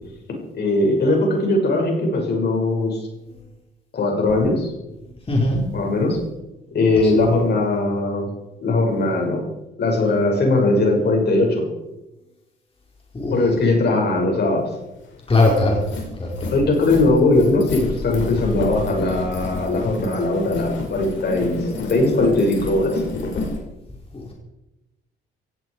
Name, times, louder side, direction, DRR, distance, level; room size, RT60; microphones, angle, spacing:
voice 1, 0.5-3.0 3.9-4.7 5.7-6.2 6.7-8.3 8.6-9.4 9.8-11.6 13.3-14.7 16.5-21.6 21.9-23.0, left 2 dB, 55° left, 1 dB, 6.3 m, -19 dB
voice 2, 5.3-5.6 7.0-7.1 13.1-13.3 15.3-15.8 16.2-16.5 24.1-24.3, left 2 dB, 30° left, -2 dB, 5.1 m, -19 dB
sound 1, 14.7-14.8 15.1-23.6, left 3 dB, 70° left, 5.7 m, -30 dB
17.0 x 16.5 x 4.9 m, 0.97 s
cardioid pair, 90°, 20 cm